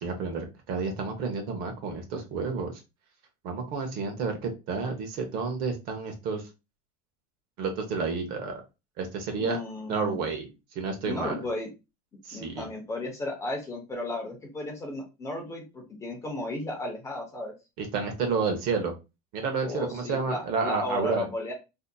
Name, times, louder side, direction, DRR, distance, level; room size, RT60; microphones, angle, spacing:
voice 1, 0.0-2.7 3.4-6.4 7.6-8.6 9.0-9.6 9.9-10.5 10.7-11.4 12.2-12.6 17.8-18.9 19.3-21.3, right 4 dB, 45° right, 4 dB, 0.8 m, -30 dB
voice 2, 9.4-10.3 11.0-11.7 12.3-17.5 19.6-21.5, left 2 dB, 15° left, 1 dB, 0.8 m, -34 dB
3.9 x 2.8 x 2.3 m, 0.27 s
cardioid pair, 160°, 21 cm